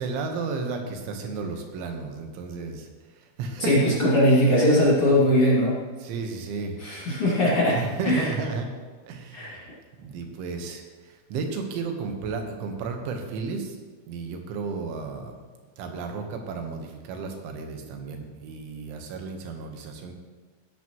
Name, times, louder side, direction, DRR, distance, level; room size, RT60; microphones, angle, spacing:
voice 1, 0.0-3.9 6.0-6.8 7.7-8.7 9.1-9.7 10.0-13.8 14.1-15.4 15.8-20.1, right 4 dB, 90° right, 4 dB, 3.7 m, -33 dB
voice 2, 3.6-5.8 6.8-7.8 8.1-8.3 9.3-9.6, left 1 dB, 35° left, -7 dB, 2.7 m, -20 dB
17.0 x 11.0 x 3.1 m, 1.4 s
omnidirectional pair, 5.3 m